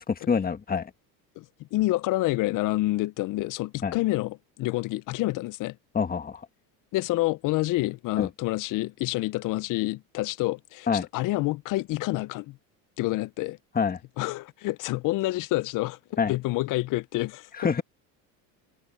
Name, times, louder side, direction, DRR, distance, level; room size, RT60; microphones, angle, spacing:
voice 1, 0.1-0.9 3.8-4.0 5.9-6.5 8.2-8.3 10.9-11.1 13.8-14.0 16.2-16.3 17.6-17.8, left 6 dB, 20° left, 1.7 m, -26 dB
voice 2, 1.7-5.8 6.9-10.9 11.1-12.6 13.0-13.6 14.2-16.0 16.3-17.5, left 18 dB, 50° left, 0.6 m, -28 dB
supercardioid pair, 115°, 42 cm